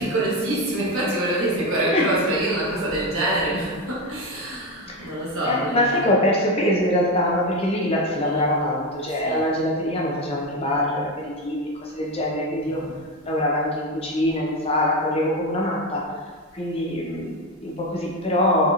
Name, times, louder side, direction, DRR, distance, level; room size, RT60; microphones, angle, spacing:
voice 1, 0.0-6.0 8.2-8.4 9.2-9.4 12.6-12.9, right 1 dB, 70° right, -6 dB, 1.0 m, -25 dB
voice 2, 5.4-12.8 13.2-16.2 16.5-18.7, left 1 dB, 30° left, -3 dB, 0.5 m, -23 dB
4.0 x 2.8 x 2.4 m, 1.6 s
head